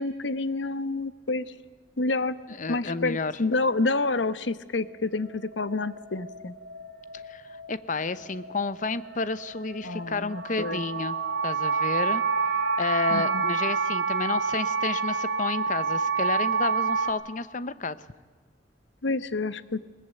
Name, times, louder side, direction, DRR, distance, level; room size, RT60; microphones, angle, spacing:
voice 1, 0.0-1.4 2.0-2.3 2.7-6.5 9.8-10.8 13.1-13.4 19.0-19.8, left 3 dB, 85° left, 14 dB, 1.0 m, -28 dB
voice 2, 2.5-3.3 7.3-11.2 11.4-12.2 12.8-18.0, left 3 dB, 45° left, 15 dB, 0.9 m, -31 dB
sound 1, 4.4-17.1, right 5 dB, 75° right, 3.4 m, -29 dB
21.0 x 19.5 x 9.3 m, 1.4 s
head